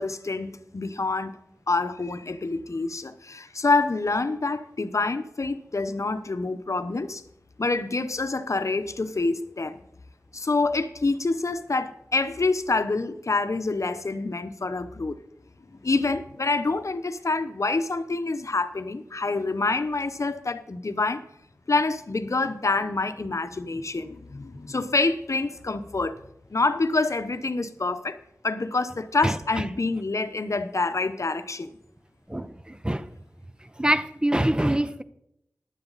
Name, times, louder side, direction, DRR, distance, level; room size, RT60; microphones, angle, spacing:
voice 1, 0.0-1.4 1.7-7.2 7.6-9.8 10.3-15.2 15.8-21.2 21.7-26.2 26.5-28.2 28.4-31.7, left 3 dB, 60° left, 0.9 m, -27 dB
voice 2, 29.2-29.6 32.3-33.1 33.8-35.0, right 1 dB, 15° right, 0.7 m, -25 dB
15.5 x 11.0 x 4.1 m
wide cardioid pair, 45°, 6 cm